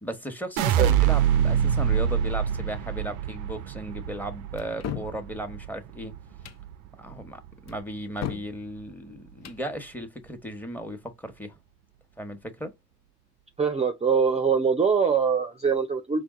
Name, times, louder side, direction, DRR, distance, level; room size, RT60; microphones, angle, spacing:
voice 1, 0.0-6.2 7.0-11.6 12.2-12.7, right 1 dB, 5° left, 1.1 m, -36 dB
sound 1, 0.6-6.7 7.1-7.7, right 9 dB, 80° right, 0.5 m, -25 dB
sound 2, 4.6-5.2 6.3-6.6 7.7-8.5 9.3-9.6, left 10 dB, 60° left, 0.6 m, -36 dB
voice 2, 13.6-16.2, right 6 dB, 20° right, 0.6 m, -23 dB
4.4 x 2.3 x 3.6 m
cardioid pair, 90°, 30 cm